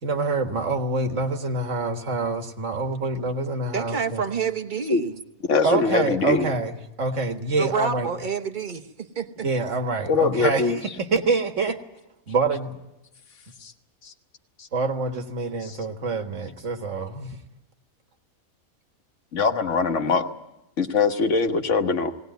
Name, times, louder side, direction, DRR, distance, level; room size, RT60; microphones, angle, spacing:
voice 1, 0.0-4.2 5.6-6.7 7.0-8.1 9.4-10.7 11.0-11.8 12.3-12.8 14.7-17.4, right 3 dB, 55° right, 6 dB, 1.8 m, -26 dB
voice 2, 3.7-5.2 7.6-9.5, right 6 dB, 35° right, 8 dB, 1.1 m, -28 dB
voice 3, 5.5-6.5 10.1-10.8 13.6-13.7 14.0-14.1 14.6-14.7 15.6-15.8 19.3-20.3 20.8-22.1, left 4 dB, 55° left, 6 dB, 1.5 m, -22 dB
19.5 x 18.5 x 9.2 m, 0.92 s
omnidirectional pair, 1.5 m